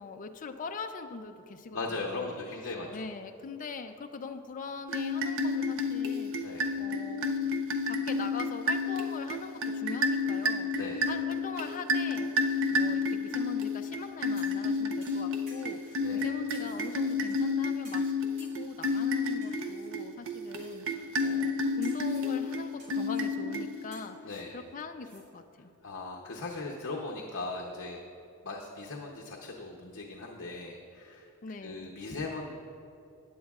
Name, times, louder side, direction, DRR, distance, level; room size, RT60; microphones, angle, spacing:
voice 1, 0.0-2.4 2.9-7.6 7.9-10.7 11.1-12.3 12.7-18.1 18.4-25.7 31.4-31.9, left 4 dB, 35° left, 6 dB, 0.5 m, -42 dB
voice 2, 1.7-3.1 6.4-6.7 10.7-11.0 16.0-16.3 24.2-24.6 25.8-28.0 28.4-31.3 31.6-32.6, left 3 dB, 60° left, -1 dB, 0.8 m, -38 dB
sound 1, 4.9-24.1, left 3 dB, 65° right, 0.7 m, -31 dB
sound 2, 14.4-14.7 15.0-16.0 16.5-17.4 17.8-18.1 18.4-19.0 19.4-19.9 20.6-20.7 21.2-21.5 21.8-22.3 22.8-23.3 23.9-25.2 25.6-25.7, right 1 dB, 45° right, 2.6 m, -55 dB
15.5 x 9.5 x 2.4 m, 2.7 s
head